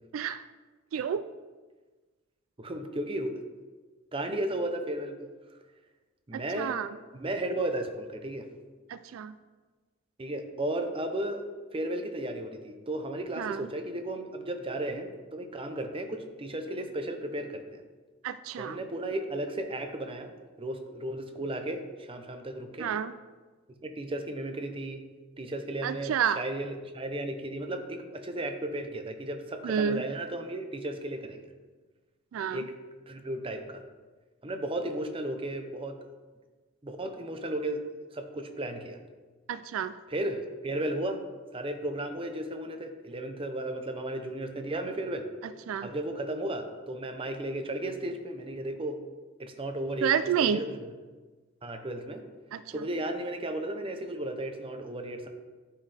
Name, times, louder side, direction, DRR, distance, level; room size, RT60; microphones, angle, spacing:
voice 1, 0.9-1.2 6.3-6.9 8.9-9.3 13.4-13.7 18.2-18.8 22.8-23.1 25.8-26.4 29.6-30.0 32.3-32.7 39.5-39.9 45.7-45.9 50.0-50.6 52.5-52.6, right 8 dB, 90° right, 13 dB, 0.3 m, -29 dB
voice 2, 2.6-3.4 4.1-5.3 6.3-6.8 7.1-8.5 10.2-17.8 18.6-22.9 23.8-25.0 25.4-31.5 32.5-32.7 33.1-33.8 34.4-36.0 36.8-37.8 38.1-39.0 40.1-41.2 41.5-45.3 45.8-49.0 49.4-50.1 50.4-50.9 51.6-52.2 52.7-55.3, right 1 dB, 25° right, 6 dB, 0.7 m, -34 dB
12.0 x 4.7 x 3.4 m, 1.3 s
head